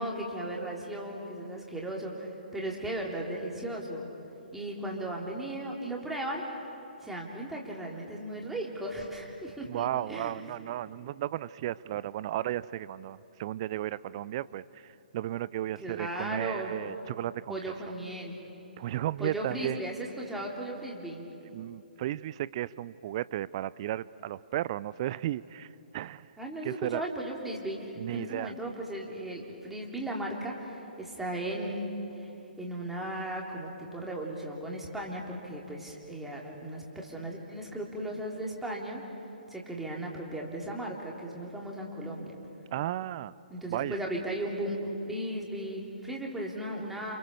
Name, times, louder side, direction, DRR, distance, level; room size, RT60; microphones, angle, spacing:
voice 1, 0.0-4.1 4.5-6.4 7.0-10.4 15.8-16.7 17.5-18.4 19.2-21.3 26.4-31.8 32.1-32.3 32.6-39.0 39.5-42.3 43.5-47.2, right 1 dB, 5° right, -2 dB, 3.4 m, -36 dB
voice 2, 9.6-14.8 15.1-17.6 18.8-19.8 21.5-25.7 25.9-26.3 26.6-27.0 28.0-28.5 42.7-43.3 43.7-44.0, right 13 dB, 35° right, 19 dB, 0.5 m, -34 dB
29.0 x 28.0 x 7.0 m, 3.0 s
figure-of-eight pair, 130°, 5 cm